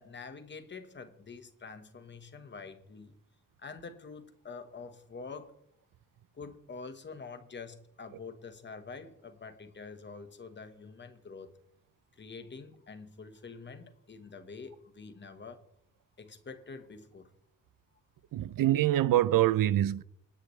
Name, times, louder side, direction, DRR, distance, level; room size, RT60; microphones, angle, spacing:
voice 1, 0.0-3.2 3.6-5.6 6.3-11.5 12.2-15.6 16.2-17.3, left 4 dB, 35° left, 1.3 m, -46 dB
voice 2, 18.3-20.0, right 13 dB, 80° right, 0.6 m, -25 dB
27.5 x 10.0 x 3.2 m
wide cardioid pair, 175°, 33 cm